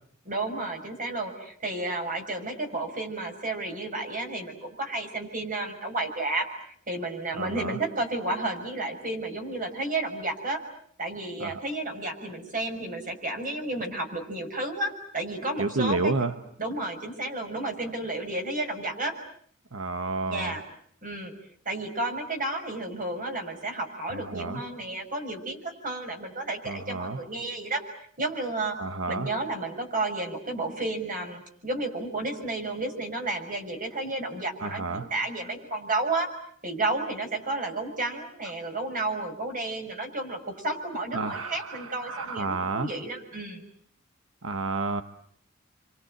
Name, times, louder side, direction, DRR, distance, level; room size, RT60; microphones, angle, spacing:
voice 1, 0.2-10.6 11.0-16.3 16.6-19.1 20.3-20.6 21.0-21.3 21.6-28.8 29.1-36.3 36.6-43.6, right 2 dB, 40° right, 4 dB, 6.3 m, -32 dB
voice 2, 7.3-7.8 11.4-11.6 15.6-16.3 19.7-20.6 24.1-24.6 26.6-27.2 28.8-29.3 34.6-35.1 41.1-42.9 44.4-45.0, right 3 dB, 85° right, 9 dB, 1.2 m, -30 dB
29.0 x 25.5 x 7.8 m, 0.64 s
head